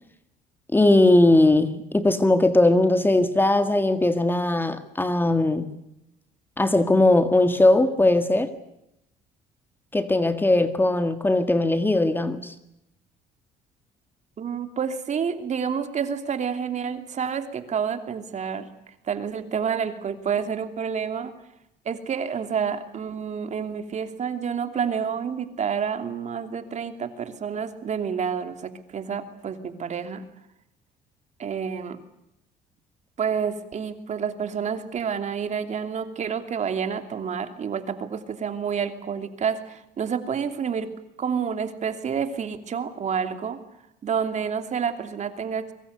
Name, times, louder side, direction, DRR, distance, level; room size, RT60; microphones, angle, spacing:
voice 1, 0.7-5.7 6.6-8.5 9.9-12.5, left 2 dB, 10° left, 1.9 m, -19 dB
voice 2, 14.4-18.7 19.1-21.3 21.8-30.2 31.4-32.0 33.2-40.9 41.2-43.6 44.0-45.7, right 7 dB, 45° right, 2.9 m, -29 dB
25.0 x 23.5 x 8.1 m
cardioid pair, 110°, 17 cm